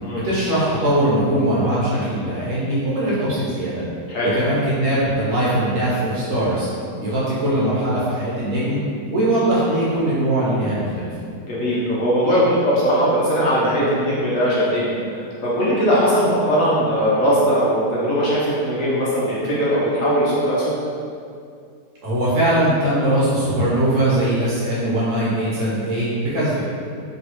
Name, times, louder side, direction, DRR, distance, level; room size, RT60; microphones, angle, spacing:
voice 1, 0.1-3.8 4.2-6.7 7.0-8.8 9.1-11.1 22.0-26.6, right 1 dB, 65° right, -8 dB, 0.9 m, -21 dB
voice 2, 11.4-20.8, equal, 65° left, -8 dB, 0.9 m, -20 dB
3.1 x 2.7 x 2.8 m, 2.4 s
omnidirectional pair, 1.8 m